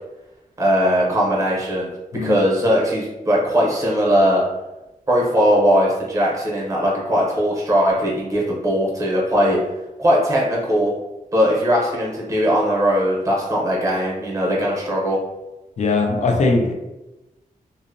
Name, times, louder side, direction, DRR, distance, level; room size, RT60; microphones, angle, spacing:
voice 1, 0.6-1.9 2.2-4.4 5.1-9.6 10.0-10.9 11.3-15.2, equal, 20° right, -3 dB, 0.7 m, -19 dB
voice 2, 15.8-16.7, left 3 dB, 55° left, 2 dB, 0.4 m, -19 dB
2.6 x 2.0 x 2.6 m, 1.0 s
wide cardioid pair, 150°, 15 cm